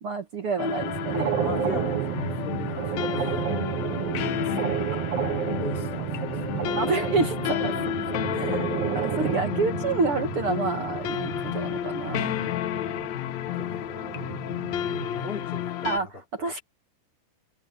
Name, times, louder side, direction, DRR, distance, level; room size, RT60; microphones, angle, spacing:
voice 1, 0.0-1.3 4.6-5.0 6.7-8.0 8.3-12.6 15.8-16.6, right 4 dB, 50° right, 1.9 m, -29 dB
sound 1, 0.6-16.0, left 12 dB, 80° left, 1.6 m, -31 dB
sound 2, 0.8-15.1, right 11 dB, 70° right, 1.5 m, -31 dB
voice 2, 1.4-3.3 3.9-4.2 5.5-6.8 8.6-9.0 12.1-12.7 13.5-14.1 14.8-16.1 16.4-16.5, left 2 dB, 15° left, 3.1 m, -38 dB
omnidirectional pair, 4.3 m